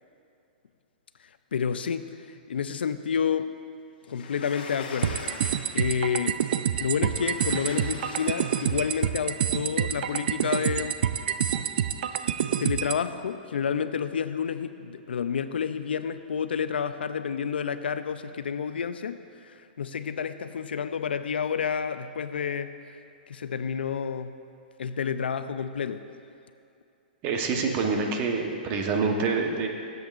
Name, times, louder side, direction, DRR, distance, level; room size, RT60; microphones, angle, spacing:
voice 1, 1.5-3.5 4.1-5.2 5.7-6.4 6.8-11.0 12.2-12.3 12.6-22.7 23.3-24.4 24.8-26.0, left 7 dB, 85° left, 11 dB, 0.4 m, -30 dB
Sliding door, 4.1-6.1 7.0-9.2, left 4 dB, 70° left, 1.1 m, -42 dB
sound 1, 5.0-13.0, right 9 dB, 70° right, 0.4 m, -27 dB
voice 2, 27.2-29.7, right 4 dB, 35° right, 3 dB, 1.0 m, -26 dB
15.5 x 7.9 x 2.5 m, 2.6 s
hypercardioid pair, 135°, 5 cm